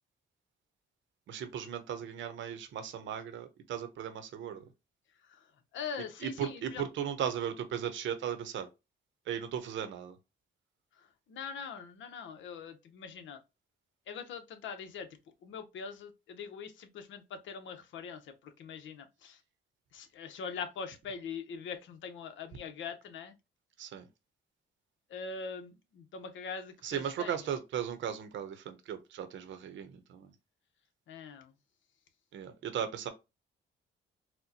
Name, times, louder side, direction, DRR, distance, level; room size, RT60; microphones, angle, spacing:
voice 1, 1.3-4.6 6.2-8.7 9.3-10.2 23.8-24.1 26.8-30.3 32.3-33.1, right 9 dB, 70° right, 0.8 m, -37 dB
voice 2, 5.7-6.9 11.0-13.4 14.1-15.1 15.4-19.4 19.9-23.3 25.1-27.4 31.1-31.5, left 6 dB, 75° left, 0.8 m, -42 dB
4.3 x 2.2 x 2.7 m
cardioid pair, 90°, 20 cm